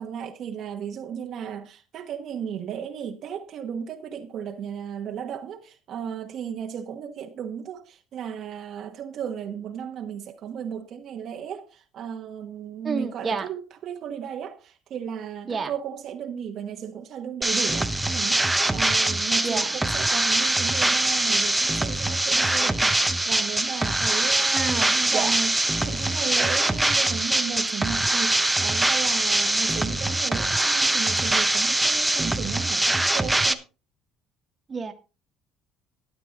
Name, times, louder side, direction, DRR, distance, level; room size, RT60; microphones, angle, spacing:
voice 1, 0.0-25.6 25.8-33.6, right 8 dB, 55° right, 1.3 m, -35 dB
voice 2, 12.8-13.5 15.5-15.7 19.4-19.8 24.5-25.4 34.7-34.9, right 5 dB, 30° right, 1.6 m, -29 dB
sound 1, 17.4-33.5, right 2 dB, 10° right, 0.9 m, -23 dB
13.0 x 9.7 x 3.8 m
cardioid pair, 115°, 0 cm